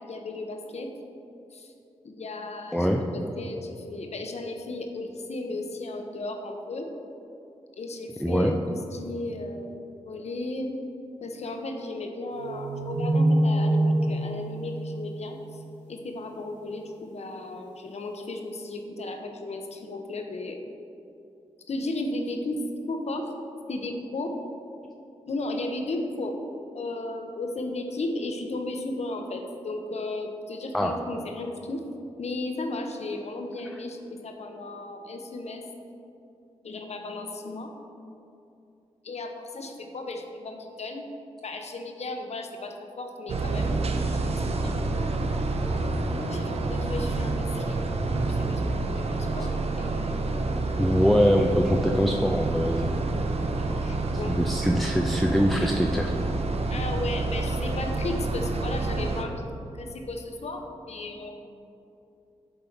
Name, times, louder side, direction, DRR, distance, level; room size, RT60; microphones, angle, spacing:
voice 1, 0.1-0.9 1.5-1.7 2.0-6.9 7.8-9.8 10.0-10.8 11.2-15.6 15.9-20.6 21.7-22.6 22.9-23.3 23.7-24.3 25.3-26.3 26.7-31.8 32.2-35.6 36.6-37.7 39.0-41.0 41.4-43.8 44.1-45.0 46.3-50.4 53.6-54.3 56.7-61.4, left 2 dB, 65° left, 4 dB, 0.8 m, -35 dB
voice 2, 8.2-8.5 30.7-31.0 50.8-52.9 54.3-56.1, equal, ahead, 2 dB, 0.4 m, -23 dB
sound 1, 12.3-15.8, right 1 dB, 85° right, 0.9 m, -25 dB
sound 2, 43.3-59.2, right 3 dB, 55° right, 0.6 m, -28 dB
8.1 x 3.7 x 4.5 m, 2.7 s
cardioid pair, 50°, 12 cm